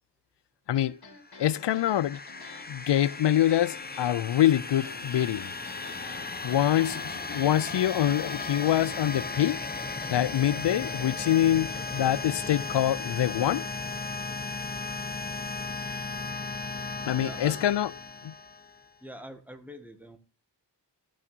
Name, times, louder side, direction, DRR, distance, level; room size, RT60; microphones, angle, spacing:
sound 1, 0.7-12.8, left 4 dB, 60° left, 2.2 m, -49 dB
sound 2, 1.2-18.9, left 3 dB, 25° left, 0.9 m, -36 dB
voice 1, 1.4-2.2 2.7-5.5 6.4-9.6 10.1-13.7 17.1-17.9 18.2-18.3, left 12 dB, 80° left, 0.5 m, -25 dB
voice 2, 17.0-17.6 19.0-20.2, equal, 5° right, 1.8 m, -44 dB
13.5 x 6.3 x 4.4 m
wide cardioid pair, 85°, 41 cm